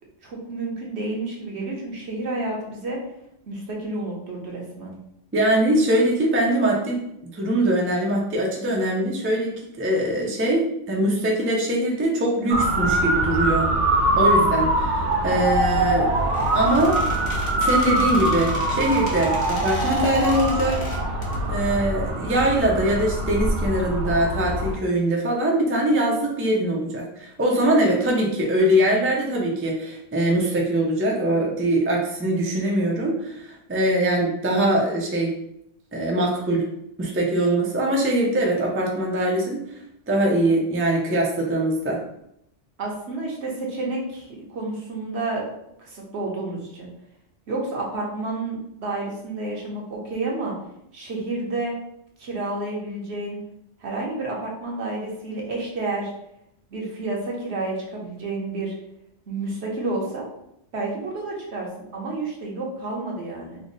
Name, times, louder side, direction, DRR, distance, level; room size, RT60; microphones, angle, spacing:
voice 1, 0.2-3.0 3.5-4.9 42.8-45.4 45.8-46.9 47.5-50.5 50.9-51.7 52.2-53.4 53.8-56.1 56.7-58.7 59.3-60.3 60.7-63.6, right 2 dB, 70° right, -1 dB, 1.1 m, -30 dB
voice 2, 5.3-7.0 7.3-13.7 14.2-15.0 15.2-16.2 16.5-17.0 17.5-20.8 21.5-35.3 35.9-36.7 37.0-39.6 40.1-42.0, right 1 dB, 15° right, -2 dB, 0.4 m, -22 dB
Motor vehicle (road) / Siren, 12.5-24.8, right 2 dB, 85° right, 0.9 m, -23 dB
Squeak, 16.2-21.4, left 2 dB, 65° left, 1.2 m, -37 dB
3.4 x 2.0 x 3.9 m, 0.77 s
omnidirectional pair, 1.2 m